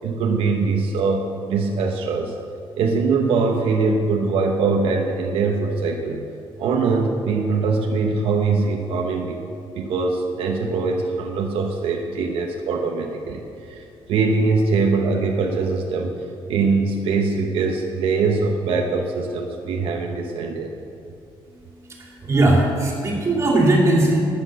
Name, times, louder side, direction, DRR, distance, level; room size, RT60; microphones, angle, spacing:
voice 1, 0.0-2.4 2.8-6.2 6.6-9.4 9.7-16.2 16.5-20.7, right 4 dB, 80° right, 2 dB, 1.1 m, -22 dB
voice 2, 22.0-24.2, right 2 dB, 30° right, -3 dB, 2.7 m, -18 dB
12.0 x 9.1 x 6.4 m, 2.6 s
cardioid pair, 165°, 9 cm